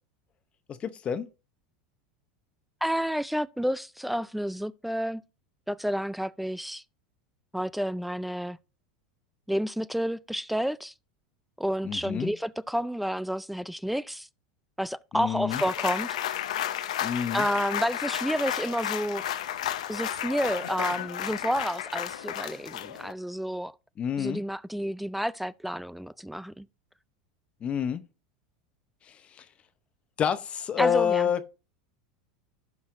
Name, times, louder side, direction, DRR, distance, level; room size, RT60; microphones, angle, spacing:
voice 1, 0.7-1.3 11.8-12.3 15.1-15.6 17.0-17.5 24.0-24.4 27.6-28.0 29.0-29.5 30.2-31.5, left 8 dB, 35° left, 0.7 m, -28 dB
voice 2, 2.8-5.2 5.7-6.8 7.5-8.6 9.5-10.9 11.6-14.3 14.8-16.2 17.3-19.2 19.9-23.7 24.2-26.7 30.8-31.3, equal, 5° right, 0.3 m, -30 dB
sound 1, 15.5-23.1, left 11 dB, 80° left, 0.7 m, -32 dB
15.5 x 5.5 x 2.6 m
hypercardioid pair, 100°, 4 cm